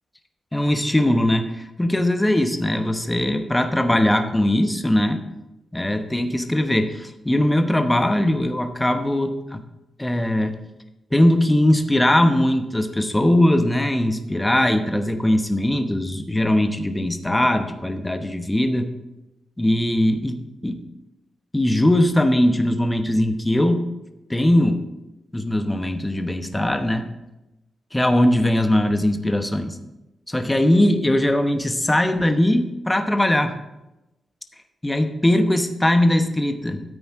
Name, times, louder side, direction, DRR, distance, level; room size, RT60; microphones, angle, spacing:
voice 1, 0.5-5.2 5.7-9.6 10.0-10.6 11.1-18.9 19.6-20.8 21.5-23.8 24.3-24.8 25.3-27.1 27.9-29.8 30.3-33.5 34.8-36.8, left 1 dB, 10° left, 6 dB, 1.0 m, -20 dB
13.5 x 8.6 x 3.7 m, 0.98 s
cardioid pair, 75°, 0 cm